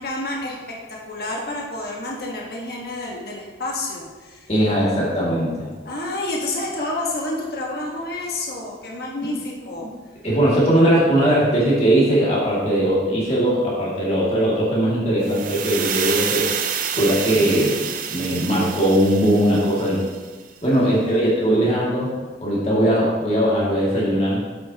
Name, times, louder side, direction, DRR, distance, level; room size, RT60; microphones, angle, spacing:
voice 1, 0.0-4.5 5.8-9.9 20.7-21.3, left 2 dB, 55° left, -2 dB, 1.5 m, -29 dB
voice 2, 4.5-5.7 10.2-16.5 17.0-17.8 18.1-20.0 20.6-22.1 22.4-24.4, right 1 dB, 35° left, -6 dB, 2.4 m, -19 dB
sound 1, 15.2-20.3, right 8 dB, 45° right, 0.5 m, -28 dB
8.7 x 7.9 x 2.9 m, 1.4 s
head